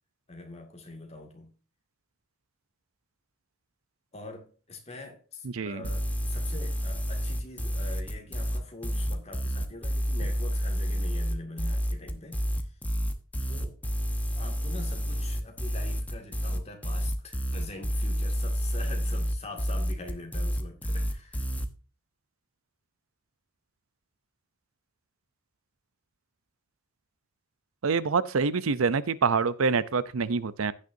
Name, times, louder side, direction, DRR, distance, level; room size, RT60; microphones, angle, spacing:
voice 1, 0.3-1.5 4.1-12.7 13.5-13.8 14.3-21.4, left 2 dB, 30° left, 2.2 m, -44 dB
voice 2, 5.4-5.8 27.8-30.7, right 5 dB, 80° right, 0.6 m, -26 dB
sound 1, 5.8-21.7, equal, 5° left, 0.9 m, -29 dB
15.5 x 6.5 x 2.7 m
head